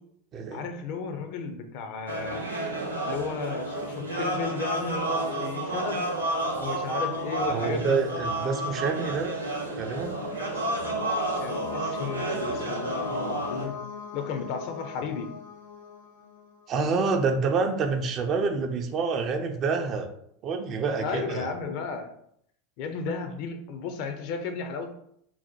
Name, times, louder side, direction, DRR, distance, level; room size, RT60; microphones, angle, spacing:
voice 1, 0.5-2.4 3.0-6.0 6.6-8.0 10.5-10.6 11.4-13.8 14.1-15.3 21.0-22.1 22.8-24.9, left 5 dB, 50° left, 6 dB, 0.6 m, -34 dB
sound 1, 2.1-13.7, right 1 dB, 85° right, 0.6 m, -31 dB
voice 2, 7.5-9.4 9.8-10.2 16.7-20.1 20.4-21.5, right 4 dB, 35° right, 5 dB, 0.5 m, -27 dB
sound 2, 9.1-16.8, left 6 dB, 75° left, 0.9 m, -40 dB
3.9 x 2.1 x 4.3 m, 0.71 s
figure-of-eight pair, 80°, 0 cm